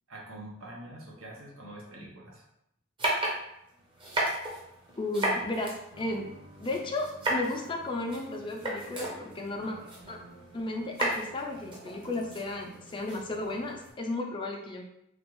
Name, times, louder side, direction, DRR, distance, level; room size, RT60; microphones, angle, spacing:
voice 1, 0.1-2.4, right 1 dB, 80° right, -2 dB, 0.9 m, -45 dB
sound 1, 3.0-13.9, right 1 dB, 25° right, 0.7 m, -35 dB
voice 2, 5.0-6.3 6.6-9.8 10.1-10.2 10.5-14.8, left 2 dB, 25° left, 1 dB, 0.4 m, -34 dB
sound 2, 5.9-13.9, right 2 dB, 50° right, 1.3 m, -54 dB
3.3 x 2.4 x 3.1 m, 0.77 s
head